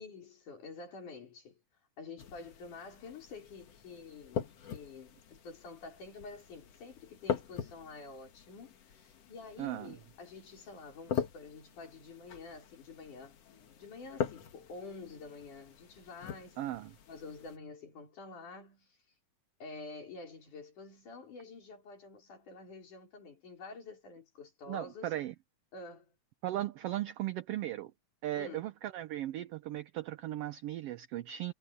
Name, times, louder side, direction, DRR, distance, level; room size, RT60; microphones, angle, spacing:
voice 1, 0.0-1.6 2.0-13.4 13.8-16.6 17.1-19.0 19.6-25.1 25.7-26.1 28.4-28.7, left 4 dB, 85° left, 6.1 m, -48 dB
sound 1, 2.2-17.6, left 7 dB, 55° left, 2.5 m, -42 dB
voice 2, 9.6-10.0 16.6-16.9 24.7-25.3 26.4-27.9 28.2-31.5, right 14 dB, 90° right, 1.3 m, -37 dB
omnidirectional pair, 3.5 m